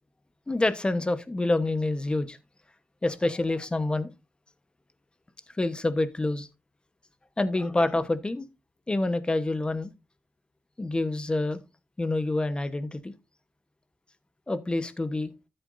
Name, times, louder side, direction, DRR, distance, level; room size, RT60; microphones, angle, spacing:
voice 1, 0.5-2.4 3.0-4.1 5.6-6.5 7.4-8.5 8.9-9.9 10.8-11.6 12.0-13.1 14.5-15.3, left 2 dB, 20° left, 1.1 m, -27 dB
13.0 x 8.0 x 2.6 m
wide cardioid pair, 120°, 5 cm